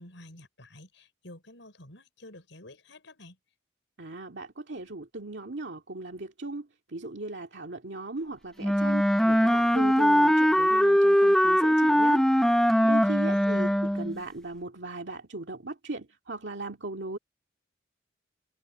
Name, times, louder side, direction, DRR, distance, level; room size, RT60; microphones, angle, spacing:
voice 1, 0.0-3.4 13.3-13.8, left 1 dB, 85° left, 5.6 m, -49 dB
voice 2, 4.0-12.3 12.8-13.7 13.9-17.2, right 2 dB, 75° right, 2.1 m, -37 dB
Wind instrument woodwind instrument, 8.6-14.2, equal, 5° left, 0.8 m, -21 dB
head